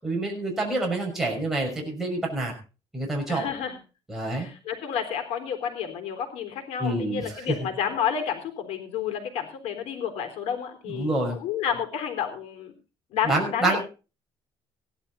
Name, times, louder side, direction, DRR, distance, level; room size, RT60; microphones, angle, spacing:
voice 1, 0.0-2.5 2.9-3.5 4.1-4.5 6.8-7.5 10.9-11.4 13.2-13.8, right 2 dB, 5° right, -2 dB, 5.9 m, -27 dB
voice 2, 3.3-3.8 4.2-12.7 13.1-13.8, left 8 dB, 85° left, 5 dB, 3.9 m, -30 dB
17.0 x 11.5 x 4.2 m, 0.33 s
cardioid pair, 145°, 10 cm